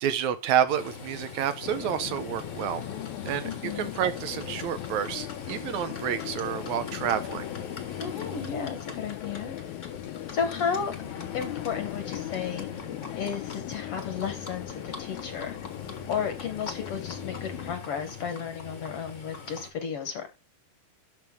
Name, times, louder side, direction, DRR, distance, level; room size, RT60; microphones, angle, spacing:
voice 1, 0.0-2.8 3.3-7.5, right 9 dB, 75° right, 2.0 m, -29 dB
Livestock farm animals working animals, 0.7-19.7, left 5 dB, 40° left, 1.0 m, -42 dB
sound 1, 1.6-17.8, left 14 dB, 80° left, 1.9 m, -39 dB
voice 2, 3.4-3.9 8.0-9.6 10.3-10.9 11.3-12.7 13.2-15.6 16.1-20.3, left 7 dB, 60° left, 1.7 m, -33 dB
12.0 x 5.4 x 3.6 m
omnidirectional pair, 3.7 m